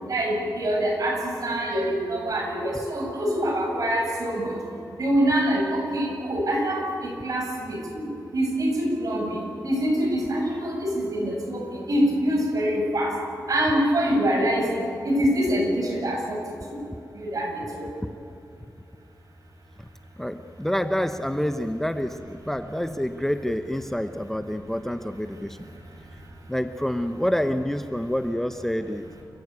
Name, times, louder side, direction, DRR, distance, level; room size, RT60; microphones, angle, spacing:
voice 1, 0.1-4.6 5.0-8.0 8.3-9.4 9.6-13.2 13.5-14.7 15.0-16.4 17.2-17.6, equal, 55° right, 0 dB, 7.6 m, -25 dB
voice 2, 20.2-25.6 26.5-29.1, equal, 5° left, 9 dB, 0.8 m, -27 dB
29.0 x 14.5 x 8.5 m, 2.6 s
wide cardioid pair, 90°, 7 cm